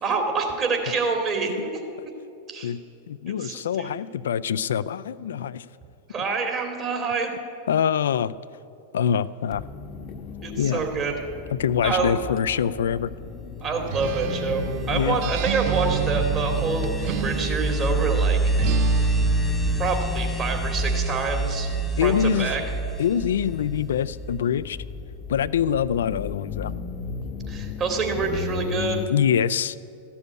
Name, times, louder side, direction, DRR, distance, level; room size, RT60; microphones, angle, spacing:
voice 1, 0.0-2.0 2.5-2.7 3.3-3.9 6.1-7.3 10.4-11.1 11.8-12.1 13.6-18.4 19.8-21.7 22.0-22.6 27.5-29.0, right 4 dB, 35° right, 3 dB, 2.6 m, -27 dB
voice 2, 3.1-5.7 7.7-8.3 8.9-9.6 10.6-10.8 11.5-13.1 14.9-15.2 22.0-22.5 23.0-24.8 25.3-26.7 29.1-29.8, left 8 dB, 75° left, 16 dB, 0.4 m, -24 dB
sound 1, 9.5-29.1, left 5 dB, 40° left, 0.9 m, -36 dB
sound 2, 13.8-24.4, right 2 dB, 5° left, 1.0 m, -26 dB
Acoustic guitar, 13.9-18.0 18.6-20.2, right 16 dB, 55° right, 0.3 m, -32 dB
14.0 x 7.1 x 9.4 m, 2.6 s
hypercardioid pair, 100°, 0 cm